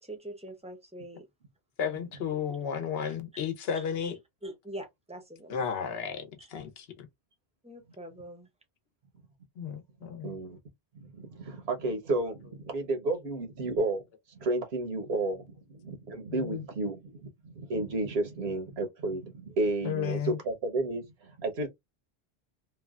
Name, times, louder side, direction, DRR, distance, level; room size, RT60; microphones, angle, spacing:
voice 1, 0.1-1.2 3.3-3.4 4.4-5.6 6.4-6.5 7.6-8.5, right 1 dB, 10° right, 0.5 m, -43 dB
voice 2, 1.8-4.2 5.5-7.1 9.6-10.3 16.3-16.6 19.8-20.4, left 7 dB, 80° left, 0.9 m, -33 dB
voice 3, 10.2-10.6 11.0-14.0 14.3-21.7, right 2 dB, 85° right, 1.1 m, -32 dB
3.1 x 2.1 x 2.3 m
omnidirectional pair, 1.0 m